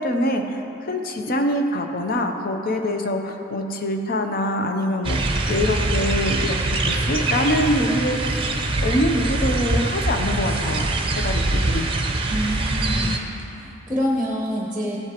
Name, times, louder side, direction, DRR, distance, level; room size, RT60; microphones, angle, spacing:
voice 1, 0.0-8.5 8.8-11.9, left 1 dB, 45° left, 5 dB, 0.7 m, -24 dB
sound 1, 5.0-13.2, right 2 dB, 25° right, 0.6 m, -23 dB
voice 2, 12.3-13.1 13.5-15.0, equal, 5° right, -4 dB, 0.9 m, -26 dB
14.5 x 7.9 x 3.0 m, 2.9 s
head